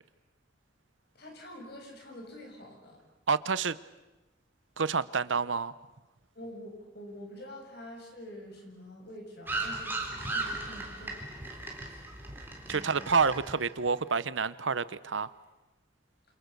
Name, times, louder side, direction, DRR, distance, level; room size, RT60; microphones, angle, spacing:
voice 1, 1.1-3.0 6.3-11.4 12.7-13.0, equal, 60° left, 2 dB, 7.8 m, -46 dB
voice 2, 3.3-3.8 4.8-5.7 12.7-15.3, right 5 dB, 85° right, 16 dB, 1.0 m, -28 dB
sound 1, 9.5-13.9, right 2 dB, 10° right, 3.8 m, -37 dB
28.5 x 27.5 x 6.9 m, 1.1 s
head